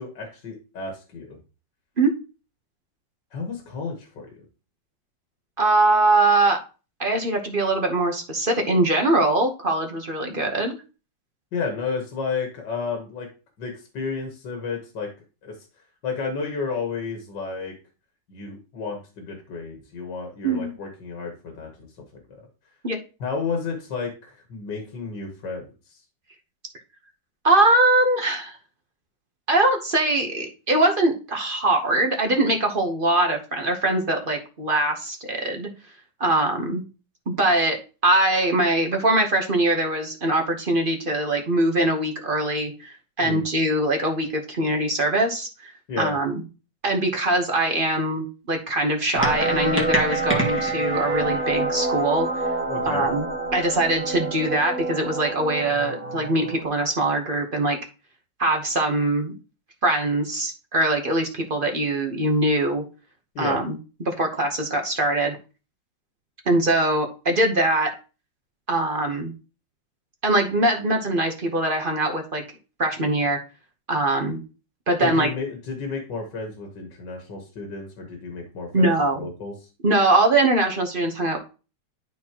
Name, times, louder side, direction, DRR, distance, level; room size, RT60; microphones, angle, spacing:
voice 1, 0.0-1.4 3.3-4.4 11.5-13.3 13.6-15.1 15.4-15.6 16.0-17.8 18.3-21.9 22.4-22.5 23.2-26.0 43.2-43.4 45.9-46.1 52.7-53.1 63.4-63.6 75.0-78.9 79.2-79.5, left 4 dB, 70° left, 2 dB, 2.0 m, -32 dB
voice 2, 5.6-6.6 7.0-10.8 20.4-20.7 22.8-23.0 27.4-28.6 29.5-35.7 36.2-36.8 37.3-45.7 46.0-46.4 46.8-52.5 52.9-53.3 53.5-57.8 58.4-59.3 59.8-62.8 63.4-65.4 66.5-67.9 68.7-69.3 70.2-72.4 72.8-73.4 73.9-74.4 74.9-75.3 78.7-79.3 79.8-81.4, right 2 dB, 35° right, 3 dB, 0.9 m, -22 dB
sound 1, 49.2-56.6, right 2 dB, 5° right, 1.6 m, -26 dB
11.5 x 4.1 x 2.9 m, 0.33 s
omnidirectional pair, 2.0 m